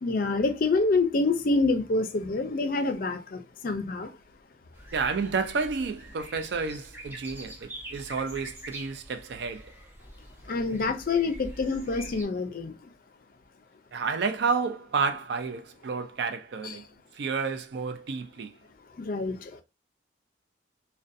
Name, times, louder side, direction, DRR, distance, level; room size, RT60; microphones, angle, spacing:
voice 1, 0.0-4.1 10.4-12.9 16.6-16.8 19.0-19.6, left 3 dB, 50° left, 0.4 m, -27 dB
sound 1, 4.7-12.2, right 1 dB, 10° right, 0.5 m, -45 dB
voice 2, 4.9-9.7 13.9-16.8 17.1-18.5, right 5 dB, 65° right, 0.4 m, -30 dB
2.4 x 2.2 x 2.5 m
head